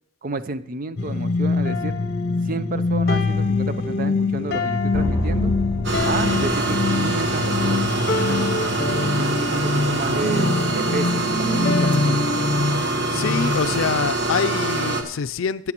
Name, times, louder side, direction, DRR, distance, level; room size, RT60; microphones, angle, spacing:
voice 1, 0.2-2.0 2.4-5.5 6.0-8.5 9.2-12.4, right 3 dB, 45° right, 0.5 m, -31 dB
sound 1, 1.0-13.9, left 3 dB, 55° left, 0.8 m, -24 dB
sound 2, 4.9-7.6, equal, 10° right, 1.4 m, -28 dB
sound 3, 5.8-15.0, right 2 dB, 60° right, 1.3 m, -24 dB
voice 2, 13.1-15.7, left 6 dB, 85° left, 0.4 m, -25 dB
17.5 x 8.3 x 3.0 m
head